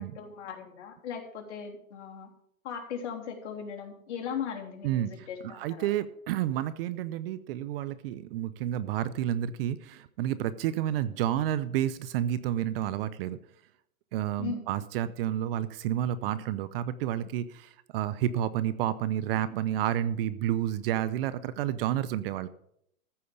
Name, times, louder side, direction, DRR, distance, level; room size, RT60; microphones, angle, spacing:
voice 1, 0.0-2.3 2.6-5.9 14.4-14.7, left 7 dB, 55° left, 1 dB, 3.4 m, -38 dB
voice 2, 4.8-13.4 14.1-22.5, right 11 dB, 45° right, 15 dB, 0.8 m, -30 dB
14.5 x 5.4 x 8.6 m, 0.70 s
hypercardioid pair, 130°, 42 cm